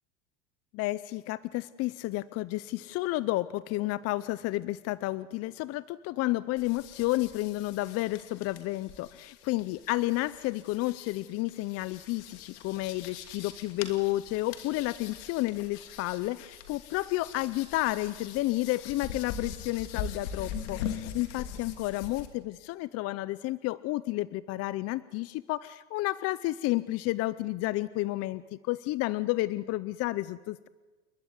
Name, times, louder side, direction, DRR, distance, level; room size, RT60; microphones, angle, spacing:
voice 1, 0.7-30.7, left 18 dB, 40° left, 18 dB, 0.6 m, -31 dB
sound 1, 6.6-22.3, left 7 dB, 65° left, 2.8 m, -42 dB
29.0 x 11.5 x 9.8 m, 1.3 s
supercardioid pair, 115°, 36 cm